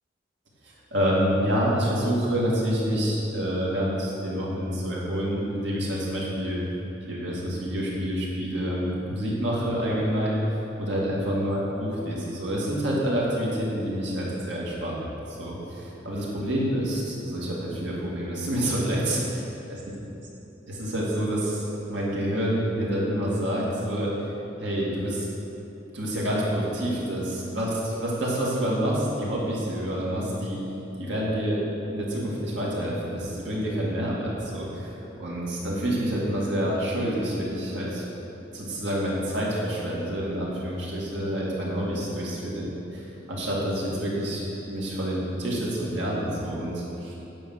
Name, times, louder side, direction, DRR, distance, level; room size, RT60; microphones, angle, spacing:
voice 1, 0.6-6.6 7.1-10.4 10.8-15.0 15.3-19.5 20.7-24.1 24.6-25.3 25.9-30.6 31.0-38.0 38.5-42.7 42.9-47.1, equal, 80° right, -5 dB, 2.3 m, -28 dB
9.1 x 5.4 x 7.6 m, 3.0 s
head